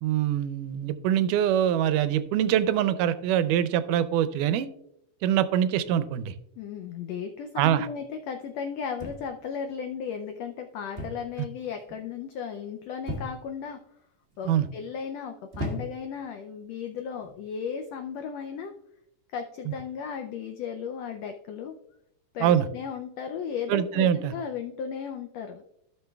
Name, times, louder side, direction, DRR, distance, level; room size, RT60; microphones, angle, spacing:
voice 1, 0.0-4.7 5.2-6.3 7.6-7.9 14.5-14.7 19.7-19.8 22.4-22.7 23.7-24.3, right 10 dB, 90° right, 13 dB, 2.2 m, -24 dB
voice 2, 6.6-13.8 14.4-18.7 19.3-21.7 22.3-25.6, left 7 dB, 85° left, 5 dB, 1.4 m, -35 dB
sound 1, 9.0-9.5 11.0-11.3 11.6-12.1 13.1-13.6 14.3-14.7 15.5-16.2 17.1-17.4, equal, 25° right, 1.3 m, -36 dB
15.5 x 6.1 x 2.3 m, 0.78 s
omnidirectional pair, 3.6 m